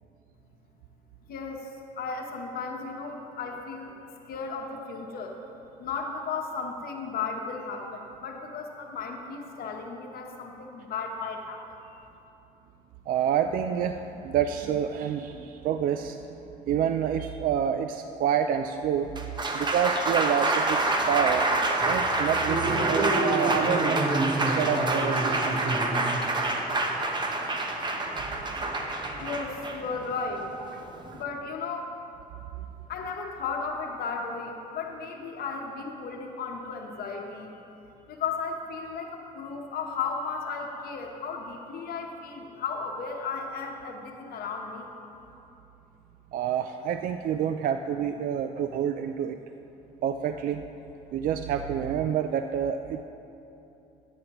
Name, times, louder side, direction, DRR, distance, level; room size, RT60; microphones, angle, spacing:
voice 1, 1.3-3.9 4.3-5.4 5.8-12.1 29.2-30.5 31.1-31.9 32.9-37.5 38.1-44.9, left 4 dB, 60° left, 2 dB, 1.0 m, -35 dB
voice 2, 13.1-16.4 16.7-19.1 19.5-21.5 21.8-25.8 30.7-31.2 46.3-49.4 50.0-50.6 51.1-53.0, right 9 dB, 55° right, 8 dB, 0.4 m, -28 dB
Applause, 19.0-31.2, right 2 dB, 25° right, 0.9 m, -26 dB
13.5 x 9.4 x 3.0 m, 2.9 s
cardioid pair, 110°, 17 cm